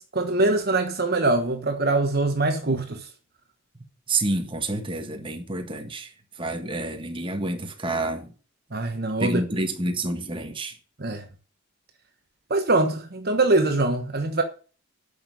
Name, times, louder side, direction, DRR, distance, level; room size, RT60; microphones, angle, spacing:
voice 1, 0.1-3.1 8.7-9.4 11.0-11.2 12.5-14.4, right 2 dB, 45° right, 1.2 m, -23 dB
voice 2, 4.1-8.3 9.2-10.8, right 2 dB, 25° right, 1.6 m, -29 dB
9.8 x 6.7 x 6.9 m
head